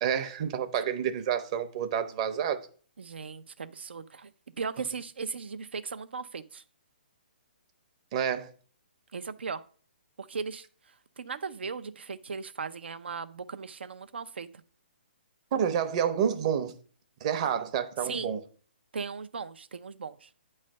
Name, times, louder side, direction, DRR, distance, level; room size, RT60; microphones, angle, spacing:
voice 1, 0.0-2.6 8.1-8.5 15.5-16.7 17.2-18.4, right 8 dB, 35° right, 0.7 m, -29 dB
voice 2, 3.0-4.3 4.6-6.6 9.1-9.6 10.2-10.6 11.2-14.5 18.0-18.3 18.9-20.3, right 5 dB, 85° right, 0.5 m, -37 dB
8.5 x 3.2 x 6.4 m
hypercardioid pair, 155°, 6 cm